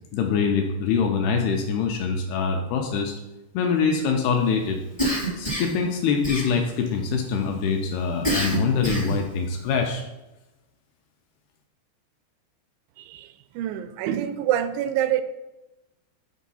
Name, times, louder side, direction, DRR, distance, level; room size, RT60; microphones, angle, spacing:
voice 1, 0.1-3.1 3.5-4.8 5.4-10.0, left 5 dB, 80° left, 2 dB, 2.3 m, -24 dB
Cough, 5.0-5.8 6.2-6.9 8.2-9.3, right 1 dB, 30° left, 0.6 m, -26 dB
voice 2, 13.0-13.3 13.6-15.2, right 11 dB, 85° right, 11 dB, 2.9 m, -26 dB
8.3 x 3.6 x 5.5 m, 1.0 s
omnidirectional pair, 5.2 m